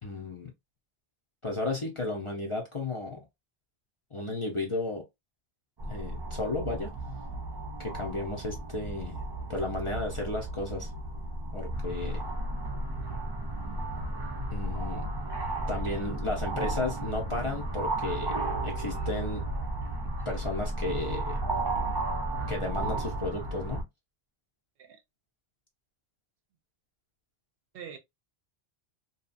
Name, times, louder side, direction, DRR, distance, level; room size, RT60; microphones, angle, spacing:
voice 1, 0.0-0.5 1.4-3.2 4.1-5.1 5.8-6.9 7.8-9.2 9.5-10.9 11.5-12.2 14.5-15.0 15.7-18.3 18.6-19.5 20.3-21.4 22.5-23.9, left 2 dB, 35° left, 0.5 m, -33 dB
sound 1, 5.8-23.8, right 2 dB, 40° right, 0.4 m, -34 dB
voice 2, 15.8-16.1 24.8-25.0 27.7-28.0, right 7 dB, 65° right, 0.7 m, -44 dB
2.7 x 2.3 x 2.5 m
omnidirectional pair, 1.1 m